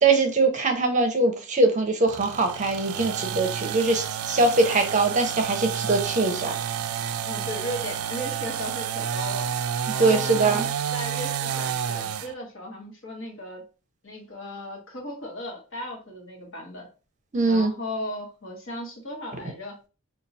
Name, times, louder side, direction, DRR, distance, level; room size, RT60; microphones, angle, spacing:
voice 1, 0.0-6.5 10.0-10.6 17.3-17.7, right 3 dB, 35° right, 4 dB, 0.6 m, -22 dB
sound 1, 2.1-12.3, right 8 dB, 85° right, 0.3 m, -30 dB
voice 2, 7.2-9.5 10.1-13.6 14.0-16.9 17.5-19.7, left 1 dB, 60° left, 1 dB, 1.2 m, -36 dB
4.4 x 2.3 x 2.7 m, 0.33 s
head